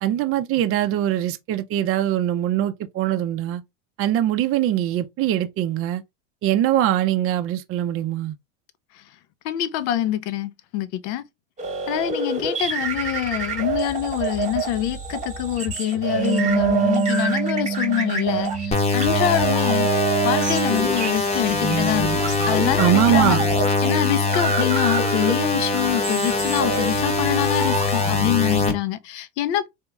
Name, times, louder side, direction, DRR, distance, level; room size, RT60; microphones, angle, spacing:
voice 1, 0.0-3.6 4.0-6.0 6.4-8.3 22.8-23.4, right 12 dB, 40° right, 0.5 m, -22 dB
voice 2, 9.4-11.2 11.9-22.2 22.5-23.4 23.8-29.7, left 12 dB, 65° left, 0.7 m, -25 dB
sound 1, 11.6-28.6, right 5 dB, 20° right, 1.1 m, -28 dB
Wind instrument woodwind instrument, 16.1-21.2, right 6 dB, 85° right, 0.9 m, -26 dB
sound 2, 18.7-28.7, left 4 dB, 15° left, 0.9 m, -23 dB
3.5 x 2.9 x 2.3 m
supercardioid pair, 105°, 37 cm